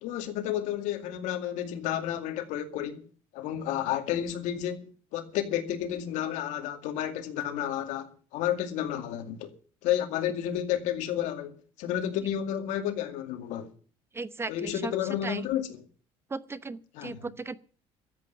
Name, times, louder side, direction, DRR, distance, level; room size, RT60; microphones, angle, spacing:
voice 1, 0.0-3.1 3.3-9.5 9.8-13.7 14.5-15.7 16.9-17.3, left 11 dB, 75° left, 2.3 m, -31 dB
voice 2, 14.1-14.9 15.2-15.4 16.3-17.6, right 3 dB, 20° right, 0.8 m, -36 dB
13.5 x 8.3 x 9.9 m
cardioid pair, 120°, 12 cm